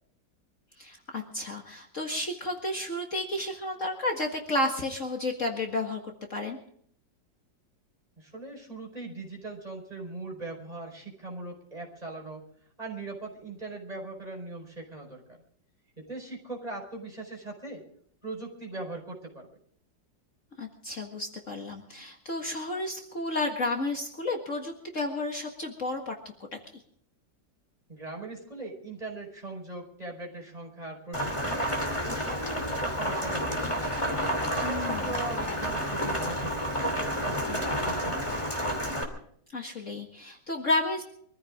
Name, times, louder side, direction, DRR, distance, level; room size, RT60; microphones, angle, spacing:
voice 1, 0.8-6.0 6.3-6.6 20.6-26.2 34.6-35.2 39.5-41.0, left 2 dB, 45° left, 2 dB, 2.1 m, -32 dB
voice 2, 8.2-12.4 12.8-15.2 16.0-17.8 18.2-19.5 27.9-31.6 32.0-34.0 34.5-38.4, right 2 dB, 20° right, 0 dB, 4.9 m, -40 dB
Rain, 31.1-39.0, equal, 15° left, 2.9 m, -30 dB
24.5 x 14.5 x 3.7 m, 0.64 s
omnidirectional pair, 1.9 m